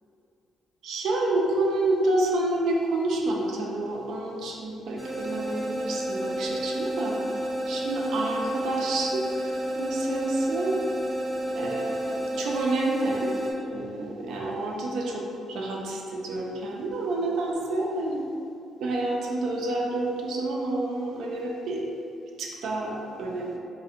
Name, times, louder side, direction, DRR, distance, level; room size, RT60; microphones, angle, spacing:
voice 1, 0.8-7.2 7.7-10.8 11.5-13.3 13.6-18.2 18.8-21.8 22.4-23.6, right 2 dB, 75° right, -1 dB, 0.3 m, -29 dB
sound 1, 5.0-13.5, right 1 dB, 10° right, 0.5 m, -31 dB
2.4 x 2.0 x 2.7 m, 2.6 s
cardioid pair, 90°, 0 cm